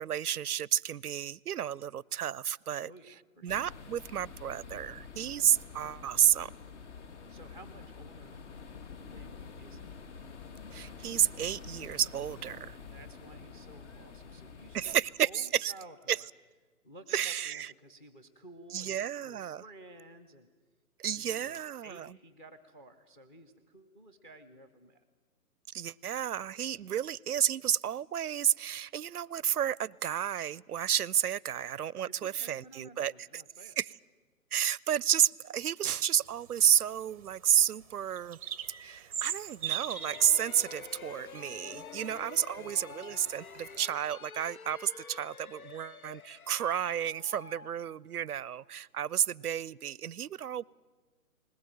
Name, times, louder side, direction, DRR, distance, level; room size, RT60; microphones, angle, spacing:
voice 1, 0.0-2.9 3.4-6.5 10.7-12.8 14.7-15.7 16.1-16.2 17.1-17.7 18.7-19.6 21.0-22.1 25.7-33.4 33.8-33.9 34.5-38.4 38.8-50.6, right 10 dB, 80° right, 26 dB, 0.6 m, -31 dB
voice 2, 2.8-3.5 7.3-8.4 9.0-10.0 12.9-14.9 15.2-16.2 16.8-20.5 21.1-25.0 32.2-33.8 42.0-42.2 42.6-43.4, right 1 dB, 15° left, 10 dB, 0.8 m, -54 dB
sound 1, 3.5-15.0, left 5 dB, 50° left, 2.1 m, -47 dB
sound 2, 36.2-42.2 42.6-43.8, right 10 dB, 25° right, 0.6 m, -41 dB
sound 3, 39.8-48.5, left 6 dB, 70° left, 1.0 m, -48 dB
20.0 x 20.0 x 9.0 m, 1.3 s
figure-of-eight pair, 140°, 45 cm